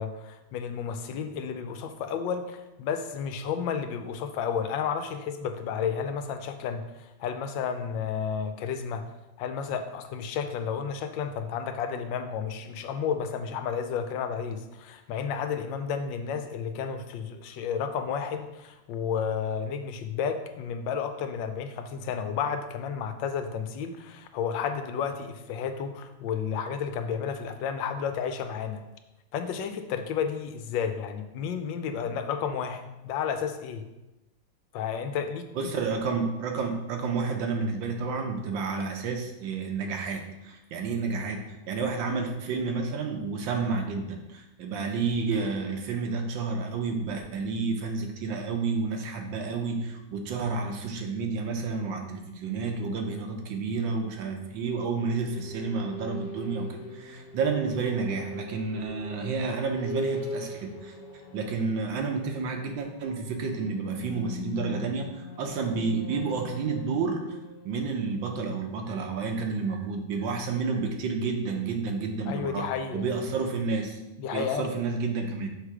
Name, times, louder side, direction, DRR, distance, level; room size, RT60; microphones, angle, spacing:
voice 1, 0.0-9.1 9.4-28.8 29.3-33.9 34.7-35.8 72.3-73.0 74.2-74.7, left 7 dB, 85° left, 8 dB, 1.3 m, -32 dB
voice 2, 35.5-60.9 61.3-67.4 67.6-74.0 74.3-75.5, right 4 dB, 85° right, 4 dB, 1.6 m, -30 dB
sound 1, 54.3-69.0, left 1 dB, 65° left, 1.3 m, -41 dB
6.4 x 3.3 x 4.8 m, 0.99 s
omnidirectional pair, 2.0 m